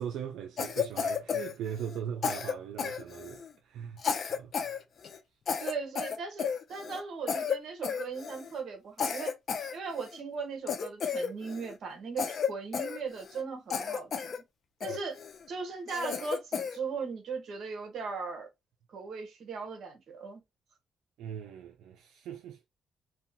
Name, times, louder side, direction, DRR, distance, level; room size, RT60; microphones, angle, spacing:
voice 1, 0.0-4.0 4.3-4.7 14.9-15.0 21.2-22.7, right 8 dB, 85° right, 0.4 m, -40 dB
Cough, 0.6-2.0 2.2-3.5 4.0-4.8 5.0-5.2 5.5-7.0 7.3-7.6 7.8-8.5 9.0-10.2 10.7-11.7 12.2-13.4 13.7-14.4 14.8-15.4 15.9-16.8, left 7 dB, 55° left, 0.4 m, -33 dB
voice 2, 5.6-9.4 9.7-14.3 14.8-15.2 15.5-18.5 18.9-20.4, right 5 dB, 65° right, 0.9 m, -38 dB
2.7 x 2.2 x 2.6 m
cardioid pair, 90°, 0 cm